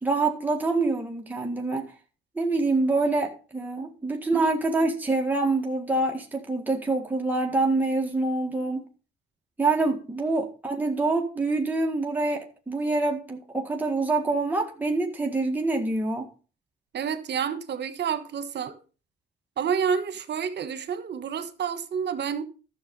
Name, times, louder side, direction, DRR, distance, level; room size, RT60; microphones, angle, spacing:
voice 1, 0.0-1.9 2.3-8.9 9.6-16.3, right 3 dB, 10° right, 1.8 m, -26 dB
voice 2, 16.9-18.8 19.6-22.4, right 7 dB, 60° right, 1.3 m, -29 dB
12.0 x 6.8 x 5.3 m
cardioid pair, 90°, 20 cm